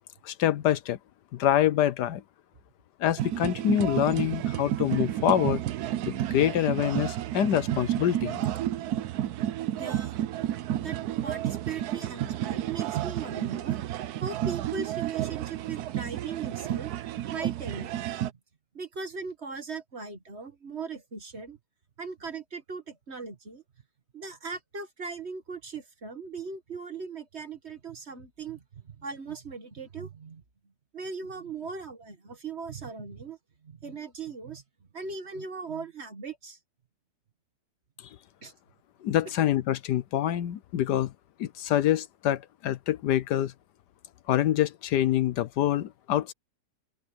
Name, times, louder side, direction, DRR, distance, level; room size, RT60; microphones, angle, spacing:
voice 1, 0.2-1.0 1.3-2.2 3.0-5.6 6.1-8.5 39.0-41.1 41.4-43.5 44.3-46.3, left 11 dB, 75° left, 1.3 m, -26 dB
sound 1, 3.2-18.3, right 12 dB, 70° right, 1.2 m, -31 dB
voice 2, 9.8-10.1 10.8-13.8 14.2-16.9 17.3-18.0 18.7-21.6 22.0-23.6 24.1-30.4 30.9-33.4 33.6-34.6 34.9-36.6 38.4-38.5, right 5 dB, 40° right, 2.0 m, -39 dB
open air
omnidirectional pair, 1.8 m